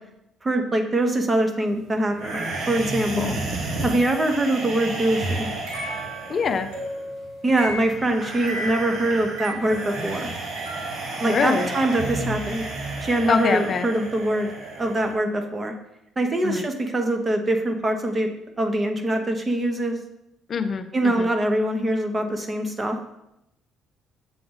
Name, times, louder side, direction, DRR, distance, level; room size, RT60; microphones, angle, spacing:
voice 1, 0.4-3.3 3.8-5.5 7.4-10.3 11.2-12.6 13.0-15.7 16.2-18.3 18.6-20.0 20.9-23.0, right 1 dB, 30° right, 5 dB, 1.1 m, -23 dB
sound 1, 2.2-15.1, right 2 dB, 65° right, 1.2 m, -32 dB
sound 2, 5.7-11.2, right 1 dB, 90° right, 1.2 m, -35 dB
voice 2, 6.3-6.7 11.3-11.7 13.3-13.9 16.4-16.6 20.5-21.3, left 5 dB, 50° left, 8 dB, 0.5 m, -24 dB
7.6 x 3.8 x 3.9 m, 0.83 s
supercardioid pair, 70°, 0 cm